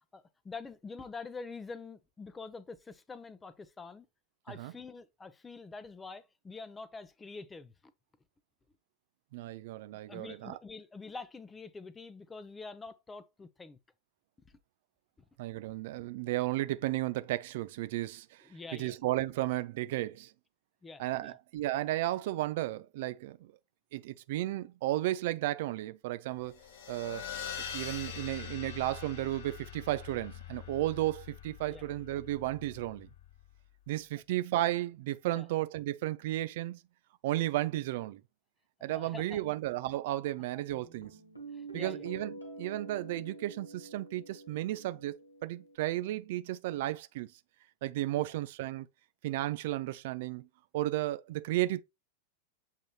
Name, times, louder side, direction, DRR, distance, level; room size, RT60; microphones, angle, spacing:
voice 1, 0.0-4.1 4.4-7.7 10.1-13.8 14.5-14.6 18.4-19.0 20.8-21.4 31.7-31.8 35.3-35.5 38.9-39.4 41.5-42.1 48.2-48.3, left 4 dB, 15° left, 0.5 m, -46 dB
voice 2, 9.3-10.6 15.4-20.3 21.0-23.4 23.9-26.6 26.9-27.3 27.7-33.1 33.9-36.8 37.2-38.2 38.8-41.2 41.7-45.1 45.4-47.3 47.8-48.9 49.2-50.5 50.7-51.8, right 15 dB, 50° right, 0.3 m, -34 dB
sound 1, 26.4-33.5, left 8 dB, 50° left, 0.9 m, -44 dB
Guitar, 40.7-45.8, right 3 dB, 85° left, 1.5 m, -47 dB
7.4 x 3.1 x 2.3 m
figure-of-eight pair, 90°, 0 cm